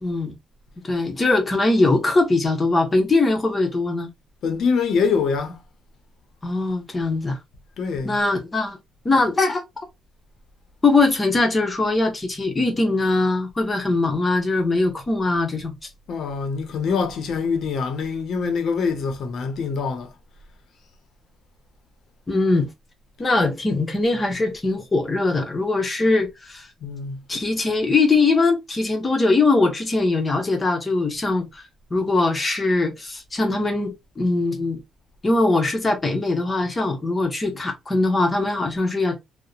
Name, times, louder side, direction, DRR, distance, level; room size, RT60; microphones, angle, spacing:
voice 1, 0.0-0.3 0.8-4.1 6.4-7.4 8.0-8.8 9.0-9.6 10.8-15.7 22.3-22.7 23.2-26.7 27.3-31.6 31.9-34.8 35.2-39.2, left 3 dB, 25° left, 0.9 m, -21 dB
voice 2, 4.4-5.6 7.8-8.2 16.1-20.1 26.8-27.2, left 5 dB, 70° left, 0.7 m, -24 dB
2.8 x 2.1 x 2.4 m
cardioid pair, 90°, 0 cm